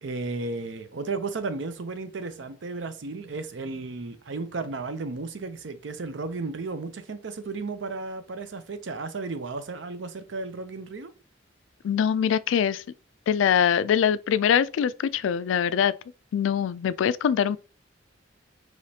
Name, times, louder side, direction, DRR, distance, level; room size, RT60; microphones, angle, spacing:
voice 1, 0.0-11.1, right 3 dB, 75° right, 0.6 m, -34 dB
voice 2, 11.8-12.8 13.3-15.9 16.3-17.6, left 8 dB, 90° left, 0.3 m, -23 dB
5.0 x 3.1 x 2.8 m
head